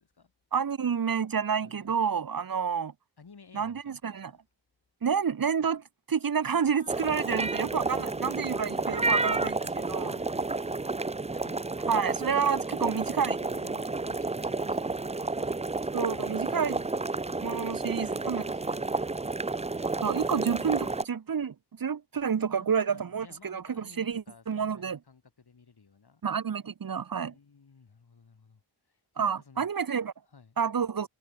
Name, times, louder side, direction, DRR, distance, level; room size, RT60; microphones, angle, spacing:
voice 1, 0.5-2.9 3.5-4.3 5.0-9.6 9.9-10.2 11.9-13.3 15.9-16.8 17.4-18.4 20.0-25.0 26.2-27.3 29.2-30.1 30.6-31.1, right 6 dB, 55° right, 1.0 m, -29 dB
voice 2, 3.2-4.4 6.5-9.3 9.6-12.1 12.7-13.0 13.4-15.3 16.5-19.6 22.5-26.2 27.3-28.6 28.9-29.7 30.3-30.6, left 5 dB, 65° left, 6.8 m, -56 dB
sound 1, 6.9-21.0, right 3 dB, 15° right, 0.6 m, -31 dB
wide cardioid pair, 100°, 42 cm